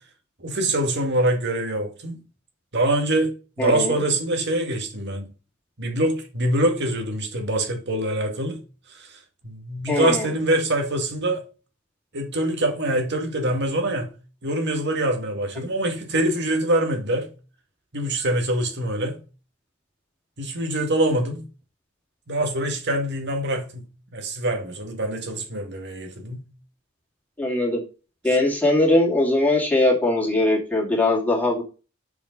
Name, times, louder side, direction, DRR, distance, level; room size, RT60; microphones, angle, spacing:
voice 1, 0.4-2.2 2.7-5.3 5.8-8.6 8.9-11.4 12.1-14.1 14.4-17.3 17.9-19.2 20.4-21.4 22.3-26.5, right 1 dB, 55° right, 2.1 m, -24 dB
voice 2, 3.6-3.9 9.9-10.3 27.4-27.8 28.2-31.6, left 2 dB, 10° left, 2.8 m, -21 dB
6.9 x 5.0 x 5.3 m
head